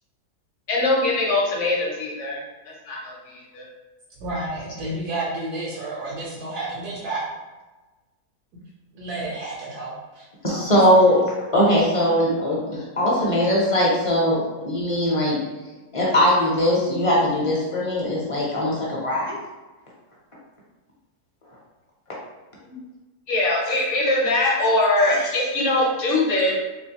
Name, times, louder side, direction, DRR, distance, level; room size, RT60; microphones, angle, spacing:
voice 1, 0.7-3.6 23.3-26.5, left 2 dB, 55° left, -2 dB, 1.1 m, -22 dB
voice 2, 4.2-7.3 8.9-10.7, right 2 dB, 90° right, -7 dB, 1.3 m, -31 dB
voice 3, 10.4-15.4 15.9-19.4 25.0-25.2, equal, 30° left, -5 dB, 0.6 m, -20 dB
3.3 x 3.1 x 2.8 m, 1.2 s
omnidirectional pair, 1.7 m